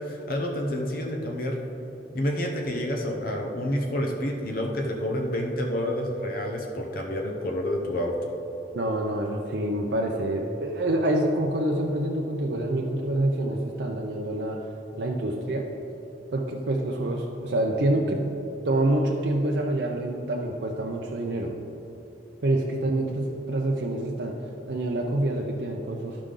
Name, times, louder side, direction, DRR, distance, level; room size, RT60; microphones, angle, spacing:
voice 1, 0.0-1.6 2.1-8.3, equal, 55° left, 1 dB, 0.8 m, -29 dB
voice 2, 8.7-14.6 15.0-15.7 16.3-18.2 18.6-21.6 22.4-24.3 24.7-26.2, right 1 dB, 70° right, 0 dB, 0.6 m, -26 dB
13.0 x 5.0 x 3.8 m, 2.9 s
head